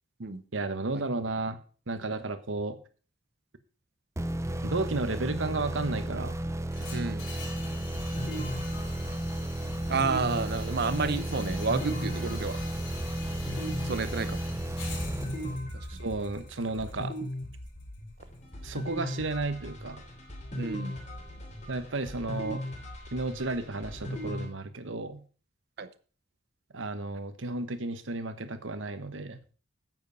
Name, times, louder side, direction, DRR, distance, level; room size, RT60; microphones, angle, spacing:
voice 1, 0.5-1.6 1.9-2.8 4.6-6.4 15.9-17.1 18.6-20.0 21.7-22.6 23.1-25.2 26.7-29.4, right 2 dB, 85° right, 11 dB, 1.2 m, -33 dB
sound 1, 4.2-15.9, right 1 dB, 15° right, 0.6 m, -34 dB
sound 2, 6.7-18.8, left 1 dB, 70° left, 4.2 m, -43 dB
voice 2, 6.9-7.2 9.9-12.6 13.8-14.4 15.7-16.1 20.6-21.0 25.8-25.9, right 4 dB, 55° right, 12 dB, 0.7 m, -31 dB
sound 3, 7.9-24.5, equal, 40° left, 3.2 m, -39 dB
9.5 x 7.9 x 5.4 m, 0.39 s
head